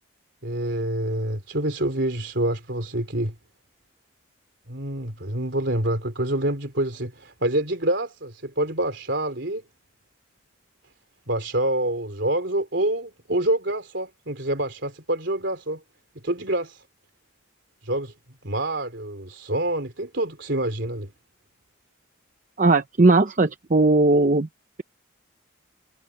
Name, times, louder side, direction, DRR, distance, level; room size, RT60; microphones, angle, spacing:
voice 1, 0.4-3.3 4.7-9.6 11.3-15.8 16.2-16.8 17.8-18.1 18.4-21.1, right 1 dB, 60° right, 3.7 m, -26 dB
voice 2, 22.6-24.5, right 2 dB, 40° right, 0.7 m, -18 dB
head